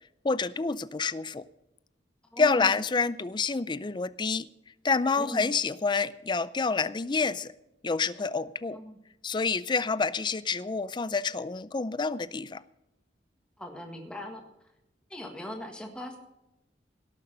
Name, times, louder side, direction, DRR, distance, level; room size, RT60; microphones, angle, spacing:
voice 1, 0.2-1.4 2.4-4.5 4.8-7.5 7.8-8.8 9.2-12.6, left 4 dB, 25° left, 16 dB, 0.4 m, -28 dB
voice 2, 2.3-2.7 5.2-5.5 8.7-9.0 13.6-14.4 15.1-16.2, left 1 dB, 5° left, 2 dB, 1.6 m, -39 dB
17.5 x 6.8 x 6.6 m, 0.89 s
head